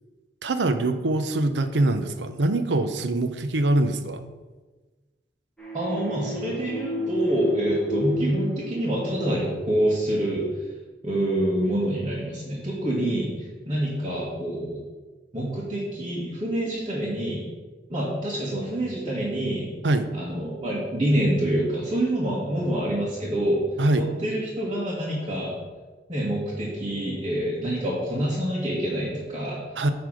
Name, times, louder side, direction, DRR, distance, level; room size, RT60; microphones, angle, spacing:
voice 1, 0.4-4.2 19.8-20.1 23.8-24.1 29.8-29.9, right 2 dB, 90° right, 10 dB, 0.7 m, -23 dB
sound 1, 5.6-10.1, left 1 dB, 5° left, 1.4 m, -32 dB
voice 2, 5.7-10.4 11.0-14.8 15.3-17.4 17.9-19.7 20.1-23.6 23.9-25.6 26.1-29.6, right 1 dB, 30° right, -7 dB, 1.6 m, -26 dB
9.4 x 3.4 x 6.2 m, 1.3 s
head